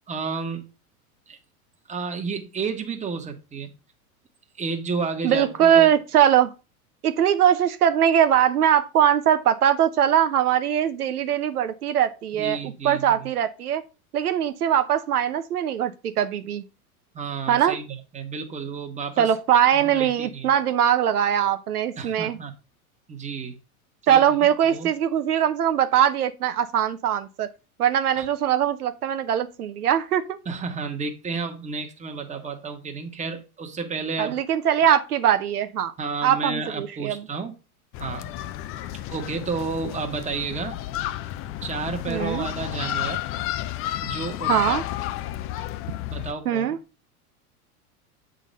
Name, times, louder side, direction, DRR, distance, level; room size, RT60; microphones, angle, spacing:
voice 1, 0.1-0.7 1.3-1.4 1.9-3.7 4.6-5.9 12.3-13.3 17.1-19.3 19.7-20.5 22.0-22.5 23.1-23.6 24.0-24.9 28.2-28.3 30.4-34.4 36.0-37.5 38.0-38.3 39.1-40.8 41.6-43.2 44.0-44.8 46.1-46.7, right 4 dB, 15° right, 1.4 m, -31 dB
voice 2, 5.2-6.5 7.0-13.8 14.1-16.6 17.5-17.8 19.2-22.4 24.1-27.5 27.8-30.4 34.2-35.9 36.2-37.2 42.1-42.5 44.5-44.8 46.4-46.8, right 9 dB, 90° right, 0.9 m, -21 dB
sound 1, 37.9-46.3, left 13 dB, 30° left, 0.4 m, -31 dB
7.6 x 4.0 x 5.2 m
hypercardioid pair, 105°, 44 cm